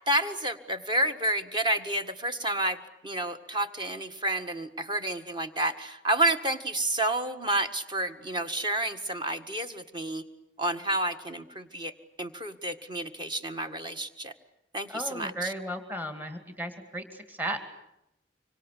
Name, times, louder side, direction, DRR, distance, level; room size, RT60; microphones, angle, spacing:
voice 1, 0.1-10.2 10.6-11.9 12.2-14.3 14.7-15.5, right 1 dB, 25° right, 7 dB, 1.8 m, -30 dB
voice 2, 14.9-17.6, right 1 dB, 10° right, 7 dB, 2.3 m, -35 dB
25.5 x 25.0 x 8.4 m, 0.84 s
head